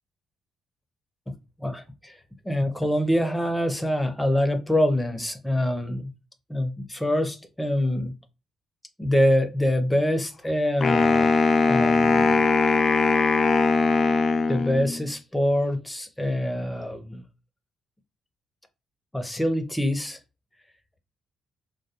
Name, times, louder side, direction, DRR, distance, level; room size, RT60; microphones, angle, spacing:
voice 1, 1.3-2.2 2.4-6.1 6.5-8.1 9.0-11.3 11.7-12.4 14.5-17.2 19.1-20.2, left 1 dB, 10° left, 0.7 m, -25 dB
Wind instrument woodwind instrument, 10.8-15.0, left 4 dB, 50° left, 0.4 m, -20 dB
2.2 x 2.2 x 2.8 m
supercardioid pair, 65°, 0 cm